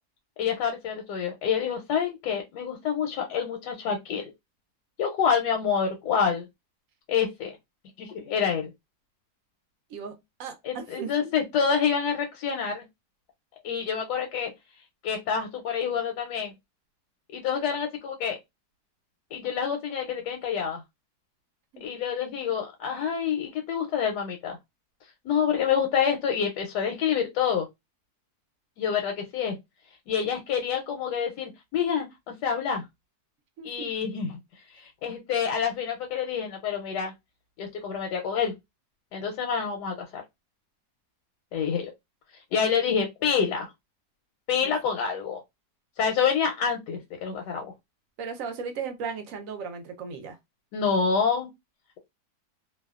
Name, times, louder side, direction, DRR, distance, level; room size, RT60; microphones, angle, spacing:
voice 1, 0.4-4.3 5.0-6.5 7.1-7.5 8.0-8.7 10.6-12.8 13.6-14.5 15.0-16.5 17.3-18.4 19.3-20.8 21.8-24.6 25.2-27.7 28.8-29.6 30.1-32.8 33.6-34.4 34.7-37.1 37.6-38.5 39.1-40.2 41.5-41.9 42.5-43.7 44.5-45.4 46.0-47.7 50.7-51.5, left 7 dB, 85° left, 1.2 m, -27 dB
voice 2, 10.4-11.3 21.7-21.9 33.6-33.9 44.6-44.7 48.2-50.4, right 5 dB, 65° right, 0.9 m, -36 dB
2.7 x 2.2 x 2.3 m
omnidirectional pair, 1.7 m